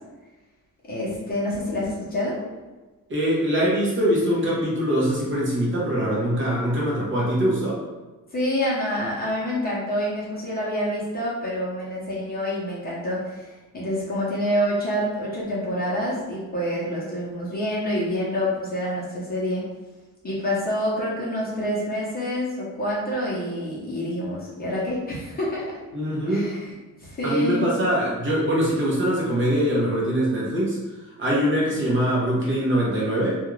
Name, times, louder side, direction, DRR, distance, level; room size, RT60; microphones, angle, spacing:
voice 1, 0.9-2.4 8.3-13.5 13.7-19.6 20.2-25.7 26.3-26.7 27.0-27.7, equal, 25° left, -7 dB, 0.7 m, -27 dB
voice 2, 3.1-7.8 25.9-26.6 27.2-33.4, equal, 35° right, -6 dB, 0.8 m, -23 dB
2.4 x 2.4 x 3.1 m, 1.2 s
cardioid pair, 160°, 34 cm